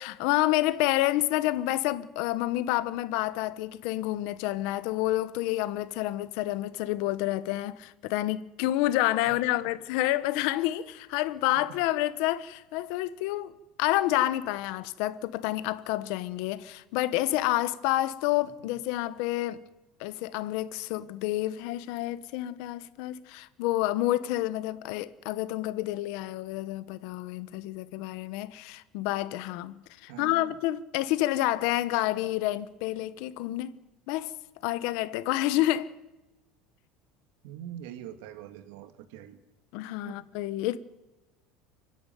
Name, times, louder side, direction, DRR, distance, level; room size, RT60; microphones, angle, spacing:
voice 1, 0.0-13.5 13.8-19.6 20.0-33.7 34.1-34.3 34.6-35.9 39.7-40.8, left 15 dB, 60° left, 1.2 m, -29 dB
voice 2, 9.3-9.7 30.1-30.5 37.4-39.4 40.0-40.3, right 11 dB, 75° right, 1.9 m, -44 dB
30.0 x 10.5 x 9.2 m
cardioid pair, 170°, 0 cm